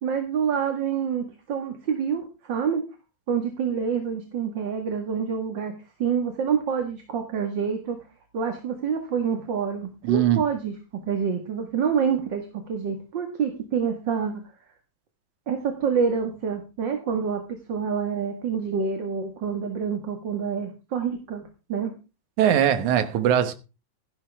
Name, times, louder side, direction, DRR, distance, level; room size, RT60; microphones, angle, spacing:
voice 1, 0.0-2.8 3.3-5.7 6.0-8.0 8.3-10.7 11.1-14.3 15.5-17.4 17.7-21.4 21.7-21.9, right 6 dB, 45° right, 2.2 m, -27 dB
voice 2, 10.0-10.4 22.4-23.5, right 10 dB, 85° right, 2.7 m, -20 dB
15.5 x 11.0 x 3.5 m
omnidirectional pair, 3.3 m